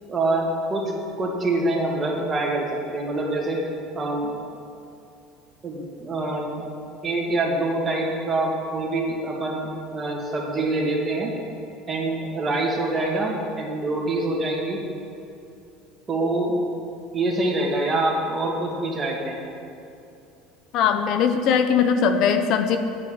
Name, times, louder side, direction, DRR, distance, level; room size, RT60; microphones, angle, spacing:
voice 1, 0.1-0.8 1.2-3.6 3.9-4.3 5.6-6.5 7.0-11.3 11.9-14.8 16.1-16.6 17.1-19.4, right 2 dB, 25° right, -1 dB, 2.5 m, -25 dB
voice 2, 20.7-22.8, left 7 dB, 60° left, 8 dB, 0.8 m, -20 dB
8.9 x 8.4 x 7.8 m, 2.6 s
supercardioid pair, 105°, 0 cm